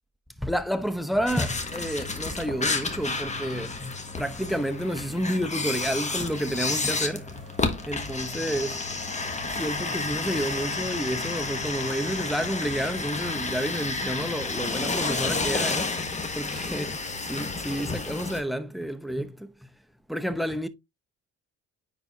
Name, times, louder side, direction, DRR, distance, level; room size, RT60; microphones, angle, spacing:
voice 1, 0.4-7.4 7.9-8.8 9.5-19.5 20.1-20.7, equal, ahead, 0.8 m, -30 dB
sound 1, 1.3-18.4, left 3 dB, 25° left, 1.3 m, -31 dB
Race car auto racing, 5.2-14.1, right 1 dB, 20° right, 2.0 m, -50 dB
9.8 x 4.0 x 2.6 m
cardioid pair, 90°, 30 cm